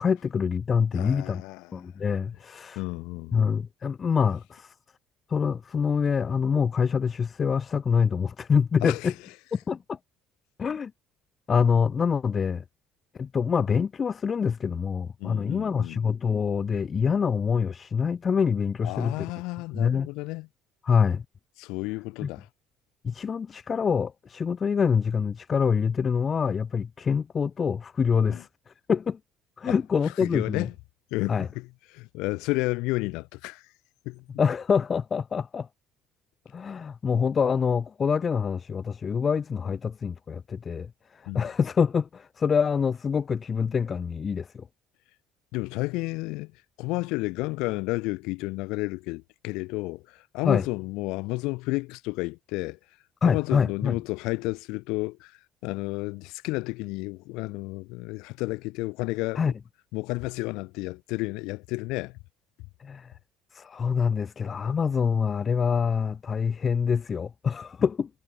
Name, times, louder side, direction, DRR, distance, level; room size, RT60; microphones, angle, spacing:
voice 1, 0.0-1.4 1.7-2.8 3.3-4.7 5.3-9.1 9.5-10.0 10.6-10.9 11.5-12.6 13.1-19.3 19.7-20.1 20.8-21.2 22.2-22.3 23.0-29.2 29.6-30.7 31.3-31.5 34.4-35.7 36.5-44.7 50.4-50.7 53.2-54.0 59.4-59.5 62.8-63.1 63.5-68.1, left 6 dB, 25° left, 5.6 m, -25 dB
voice 2, 0.9-1.7 2.8-3.4 8.8-9.1 15.2-16.0 18.8-20.5 21.6-22.5 28.3-28.4 29.7-29.8 30.2-30.7 31.1-31.7 31.9-33.6 34.1-34.2 41.3-41.5 45.5-46.5 46.8-52.8 53.2-59.5 59.9-62.1, left 23 dB, 85° left, 7.5 m, -31 dB
cardioid pair, 145°, 0 cm